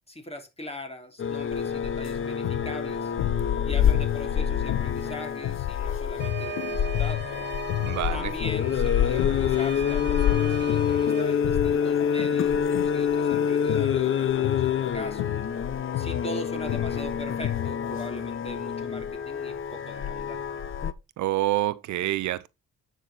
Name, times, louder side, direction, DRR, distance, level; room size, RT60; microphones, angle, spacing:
voice 1, 0.1-3.1 3.6-7.3 8.1-15.2 16.0-20.4, left 1 dB, 20° left, 3.0 m, -40 dB
sound 1, 1.2-20.9, left 8 dB, 45° left, 0.8 m, -27 dB
sound 2, 2.2-10.0 10.3-17.9, left 17 dB, 85° left, 0.5 m, -33 dB
sound 3, 6.2-11.2, right 10 dB, 35° right, 1.8 m, -40 dB
voice 2, 7.8-8.3 21.2-22.5, right 14 dB, 75° right, 0.7 m, -27 dB
9.8 x 5.9 x 4.2 m
cardioid pair, 90°, 30 cm